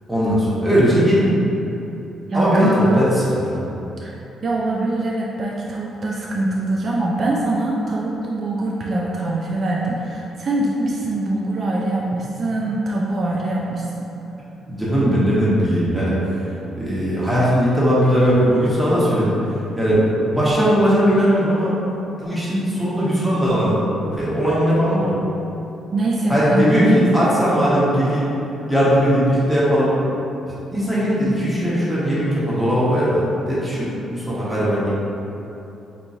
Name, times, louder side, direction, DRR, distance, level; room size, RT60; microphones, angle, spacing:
voice 1, 0.1-1.3 2.3-3.6 14.7-16.4 16.8-21.7 22.2-25.2 26.3-28.3 28.7-30.0 30.7-34.9, equal, 10° right, -9 dB, 1.3 m, -18 dB
voice 2, 2.3-2.8 4.0-13.9 25.9-27.0, right 2 dB, 45° right, -4 dB, 0.4 m, -23 dB
4.5 x 2.9 x 2.7 m, 2.9 s
cardioid pair, 90°, 0 cm